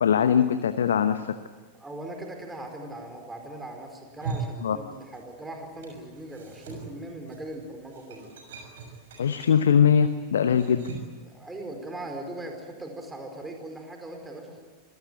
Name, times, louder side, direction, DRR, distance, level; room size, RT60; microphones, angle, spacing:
voice 1, 0.0-1.3 4.6-4.8 9.2-10.9, left 8 dB, 65° left, 10 dB, 1.0 m, -21 dB
voice 2, 1.7-8.3 11.2-14.6, right 1 dB, 10° right, 3 dB, 4.6 m, -39 dB
sound 1, 4.0-5.4 5.7-11.2, right 4 dB, 60° right, 6.5 m, -40 dB
26.0 x 18.0 x 9.2 m, 1.4 s
figure-of-eight pair, 90°, 0 cm